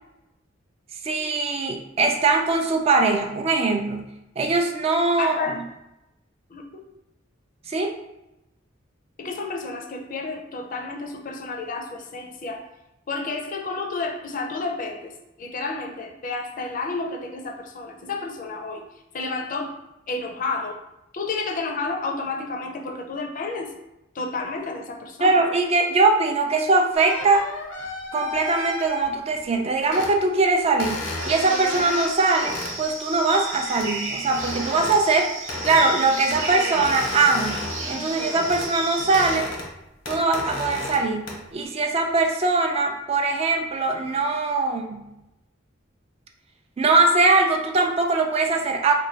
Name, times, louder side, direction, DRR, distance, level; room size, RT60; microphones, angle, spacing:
voice 1, 1.0-4.1 4.4-5.6 7.7-7.9 25.2-27.5 28.1-35.3 35.6-39.5 40.1-45.1 46.8-48.9, right 3 dB, 30° right, 3 dB, 0.3 m, -21 dB
voice 2, 5.2-5.6 6.5-6.8 9.2-12.6 13.1-15.1 15.4-18.8 19.1-19.7 20.1-20.8 21.1-23.7 24.1-25.4, left 3 dB, 45° left, 3 dB, 0.4 m, -31 dB
sound 1, 26.9-29.4 29.8-30.2 30.8-32.7 33.7-33.9 34.2-35.0 35.5-35.9 36.3-38.7 39.0-39.7 40.0-41.0 41.3-41.6, left 2 dB, 85° left, 0.8 m, -33 dB
sound 2, 31.2-39.4, right 3 dB, 85° right, 0.7 m, -33 dB
3.0 x 2.2 x 3.9 m, 0.91 s
head